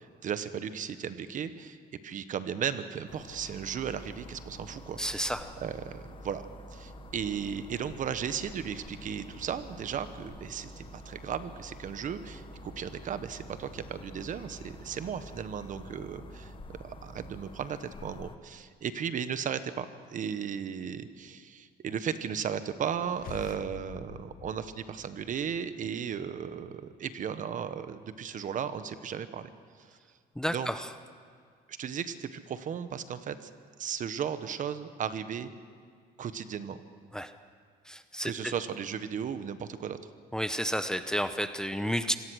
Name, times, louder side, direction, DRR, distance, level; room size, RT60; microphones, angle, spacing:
voice 1, 0.0-1.8 2.0-5.3 5.6-6.4 6.7-12.4 12.8-19.8 20.1-29.5 30.5-30.7 31.7-33.5 33.8-35.5 36.2-36.8 38.2-40.0, right 8 dB, 50° right, 12 dB, 1.2 m, -35 dB
sound 1, 3.1-18.4, left 5 dB, 30° left, 1.1 m, -50 dB
sound 2, 3.2-17.7, right 5 dB, 35° right, 2.9 m, -50 dB
voice 2, 5.0-5.5 30.3-30.9 37.1-37.3 37.8-38.5 40.3-42.2, equal, 5° left, 10 dB, 0.9 m, -31 dB
sound 3, 22.9-25.7, left 13 dB, 60° left, 0.7 m, -47 dB
25.5 x 18.0 x 6.4 m, 2.1 s
cardioid pair, 110°, 17 cm